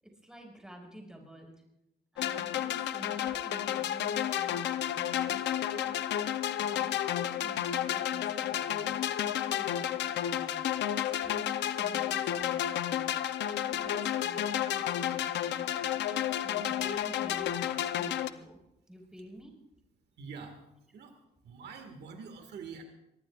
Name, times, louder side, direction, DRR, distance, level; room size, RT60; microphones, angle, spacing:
voice 1, 0.0-1.5 2.1-6.0 6.6-8.9 9.2-10.7 11.0-11.5 11.7-13.1 13.3-16.0 16.4-18.6 18.9-19.5, equal, 5° right, 1 dB, 5.5 m, -50 dB
sound 1, 2.2-18.3, left 11 dB, 90° left, 0.7 m, -31 dB
voice 2, 20.2-20.6 20.9-21.2 21.4-22.8, right 5 dB, 75° right, 5 dB, 2.0 m, -45 dB
24.5 x 21.5 x 2.5 m, 0.87 s
cardioid pair, 115°, 17 cm